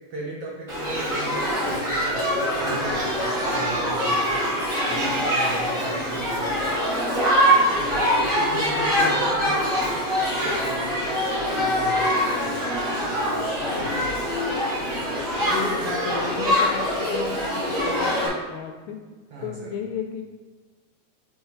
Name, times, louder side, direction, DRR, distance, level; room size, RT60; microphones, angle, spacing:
voice 1, 0.1-6.9 7.7-11.0 11.3-14.2 19.3-19.7, right 3 dB, 70° right, -3 dB, 1.5 m, -37 dB
Shout / Human group actions, 0.7-18.3, equal, 25° right, 1.5 m, -24 dB
voice 2, 8.4-9.0 15.4-19.0 19.4-20.2, left 6 dB, 80° left, 5 dB, 1.8 m, -34 dB
5.6 x 4.2 x 4.3 m, 1.3 s
omnidirectional pair, 3.4 m